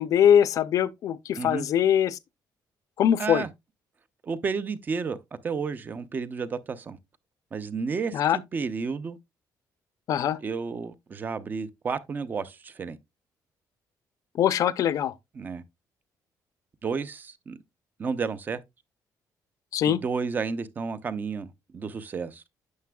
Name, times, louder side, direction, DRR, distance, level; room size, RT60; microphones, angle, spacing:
voice 1, 0.0-2.2 3.0-3.4 8.1-8.4 10.1-10.4 14.4-15.1 19.7-20.0, left 9 dB, 55° left, 0.5 m, -22 dB
voice 2, 1.4-1.7 3.2-3.5 4.2-5.2 5.4-7.0 7.5-9.2 10.4-13.0 15.3-15.6 16.8-17.6 18.0-18.6 19.8-22.4, right 5 dB, 25° right, 0.5 m, -31 dB
9.4 x 6.7 x 2.3 m
cardioid pair, 180°, 7 cm